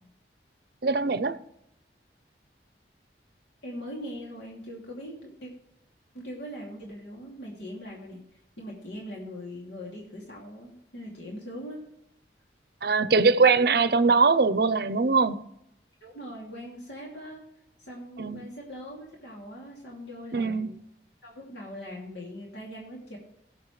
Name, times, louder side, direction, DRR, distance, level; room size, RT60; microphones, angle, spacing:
voice 1, 0.8-1.4 12.8-15.4 18.2-18.4 20.3-20.7, right 4 dB, 60° right, 0.6 m, -22 dB
voice 2, 3.6-5.5 6.1-8.2 8.6-11.8 16.0-17.4 17.8-20.7 21.2-23.2, equal, 85° left, 2.6 m, -41 dB
16.5 x 7.4 x 3.2 m
head